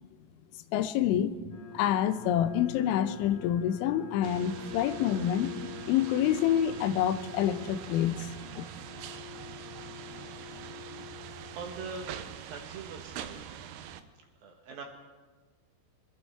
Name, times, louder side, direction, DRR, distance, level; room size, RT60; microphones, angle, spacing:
voice 1, 0.7-1.3 1.7-5.5 5.9-8.3 8.6-8.7, left 10 dB, 85° left, 10 dB, 3.1 m, -27 dB
sound 1, 1.5-11.6, left 8 dB, 45° left, 2.1 m, -45 dB
sound 2, 4.2-14.0, right 10 dB, 80° right, 3.0 m, -44 dB
voice 2, 11.5-12.1 12.5-13.4 14.4-14.8, right 4 dB, 65° right, 3 dB, 2.7 m, -41 dB
24.0 x 12.0 x 4.5 m, 1.4 s
omnidirectional pair, 5.4 m